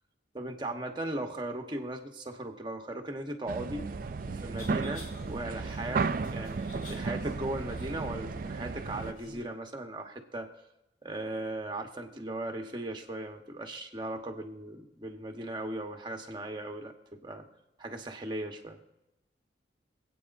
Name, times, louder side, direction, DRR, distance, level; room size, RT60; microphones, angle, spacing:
voice 1, 0.3-3.9 4.3-10.5 11.0-17.5 17.8-18.8, right 1 dB, 25° right, 3 dB, 1.2 m, -38 dB
sound 1, 3.5-9.1, right 4 dB, 50° right, 0.4 m, -34 dB
sound 2, 3.7-9.4, equal, 55° left, 3.2 m, -48 dB
25.0 x 8.6 x 2.6 m, 0.91 s
head